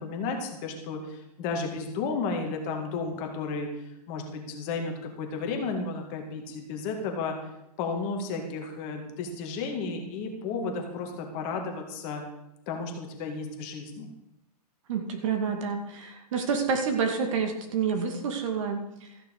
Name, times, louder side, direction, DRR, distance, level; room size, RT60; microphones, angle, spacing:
voice 1, 0.0-3.7 4.1-7.4 7.8-12.2 12.7-14.1, left 4 dB, 30° left, 3 dB, 2.0 m, -33 dB
voice 2, 14.9-18.8, right 5 dB, 50° right, 5 dB, 2.2 m, -28 dB
14.0 x 6.6 x 6.5 m, 0.86 s
hypercardioid pair, 160°, 21 cm